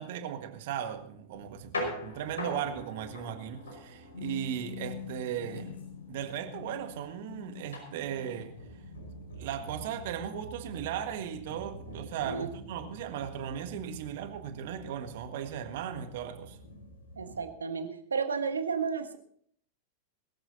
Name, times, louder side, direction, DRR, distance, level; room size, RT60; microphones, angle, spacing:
voice 1, 0.0-5.8 6.1-8.5 9.4-16.6, right 9 dB, 50° right, 1.6 m, -37 dB
sound 1, 1.3-17.5, left 2 dB, 70° left, 5.4 m, -43 dB
voice 2, 17.2-19.2, right 5 dB, 75° right, 1.4 m, -32 dB
21.5 x 14.5 x 2.8 m
figure-of-eight pair, 90°, 0 cm